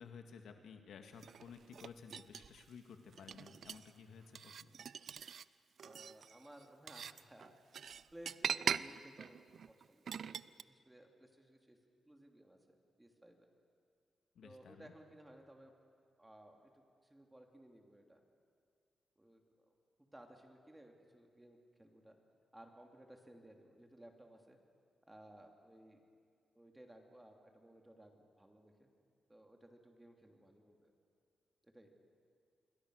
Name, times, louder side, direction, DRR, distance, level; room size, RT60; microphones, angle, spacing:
voice 1, 0.0-4.7 14.4-14.9, left 6 dB, 85° left, 5 dB, 2.0 m, -54 dB
sound 1, 1.2-2.6 3.1-3.9 4.4-5.4 5.8-10.6, right 7 dB, 65° right, 0.5 m, -42 dB
voice 2, 5.8-7.5 8.1-9.4 9.7-11.8 12.0-13.5 14.4-15.7 16.2-16.7 17.0-18.2 19.2-19.8 20.1-22.2 22.5-24.6 25.1-26.0 26.5-28.9 29.3-30.9 31.6-31.9, right 1 dB, 10° right, 3 dB, 2.9 m, -59 dB
27.5 x 22.0 x 6.5 m, 2.3 s
cardioid pair, 110°, 0 cm